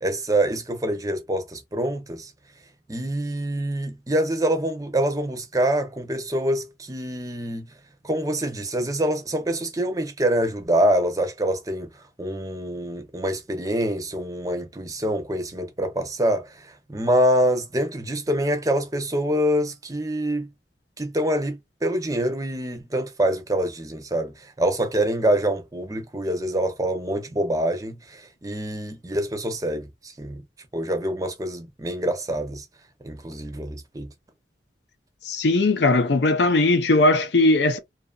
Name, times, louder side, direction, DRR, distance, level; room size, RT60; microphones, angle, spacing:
voice 1, 0.0-2.3 2.9-7.7 8.0-11.9 12.2-20.5 21.0-30.4 30.7-32.6 33.0-34.1, right 1 dB, 20° right, 0.6 m, -25 dB
voice 2, 35.3-37.8, left 2 dB, 80° left, 0.6 m, -19 dB
2.7 x 2.5 x 2.3 m
head